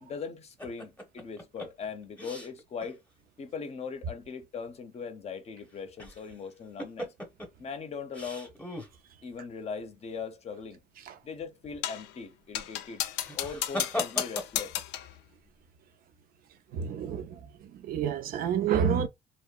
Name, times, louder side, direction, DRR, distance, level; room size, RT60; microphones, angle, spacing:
voice 1, 0.0-3.0 3.4-7.1 7.6-8.5 9.2-10.8 11.2-13.0 13.4-14.8, left 5 dB, 40° left, 0.6 m, -40 dB
sound 1, 0.6-2.9 3.3-3.4 5.7-6.4 6.8-7.5 8.1-8.9 13.1-14.8, equal, 10° left, 0.8 m, -38 dB
sound 2, 11.8-12.1 12.5-15.1, left 12 dB, 90° left, 0.4 m, -33 dB
voice 2, 16.7-19.1, right 8 dB, 60° right, 0.4 m, -29 dB
2.8 x 2.0 x 2.2 m
cardioid pair, 110°, 17 cm